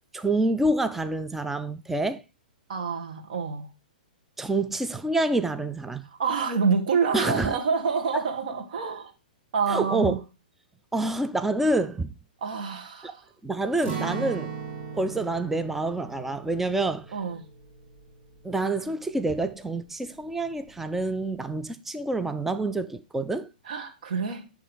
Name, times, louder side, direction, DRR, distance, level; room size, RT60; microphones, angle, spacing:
voice 1, 0.1-2.2 4.4-6.1 7.1-7.6 8.1-8.2 9.7-10.2 10.9-12.1 13.0-13.1 13.4-14.5 15.0-17.1 18.4-23.5, right 2 dB, 5° right, 0.4 m, -27 dB
voice 2, 2.7-3.7 6.2-9.1 9.5-10.2 12.4-13.2 14.1-14.3 17.1-17.5 23.7-24.5, right 5 dB, 65° right, 1.8 m, -27 dB
Acoustic guitar, 13.8-19.7 20.0-20.2 20.7-21.2, right 6 dB, 30° right, 2.6 m, -38 dB
10.5 x 3.6 x 5.0 m
hypercardioid pair, 120°, 5 cm